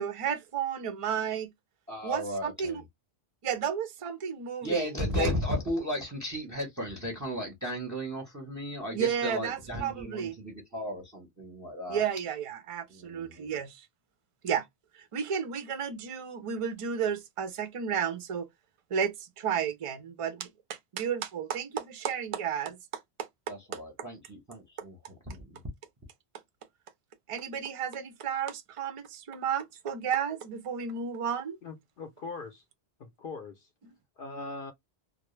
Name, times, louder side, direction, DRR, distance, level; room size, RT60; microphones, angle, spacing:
voice 1, 0.0-1.5 2.0-2.8 3.4-4.8 5.2-5.3 8.9-10.4 11.9-13.9 14.4-14.6 15.1-18.5 18.9-22.8 23.2-23.3 27.3-31.6, right 8 dB, 50° right, 0.4 m, -32 dB
voice 2, 1.9-2.8 4.6-12.0 12.9-13.5 23.5-25.0 25.3-25.6, equal, 20° right, 0.8 m, -34 dB
voice 3, 31.6-32.6 33.0-33.7 34.2-34.7, left 3 dB, 60° left, 0.7 m, -41 dB
2.3 x 2.0 x 3.0 m
omnidirectional pair, 1.1 m